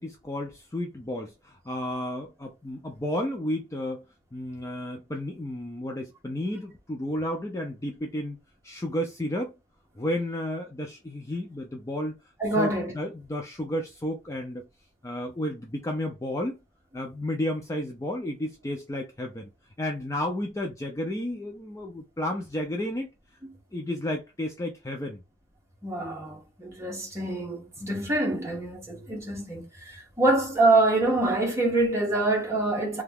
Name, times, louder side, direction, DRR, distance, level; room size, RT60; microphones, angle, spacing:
voice 1, 0.0-4.0 4.3-8.4 8.6-9.5 10.0-12.2 12.6-14.7 15.0-16.6 16.9-19.5 19.8-23.1 23.7-25.2, left 1 dB, 15° left, 0.4 m, -32 dB
voice 2, 12.4-12.9 25.8-33.0, right 2 dB, 15° right, 0.9 m, -25 dB
2.8 x 2.3 x 3.4 m
head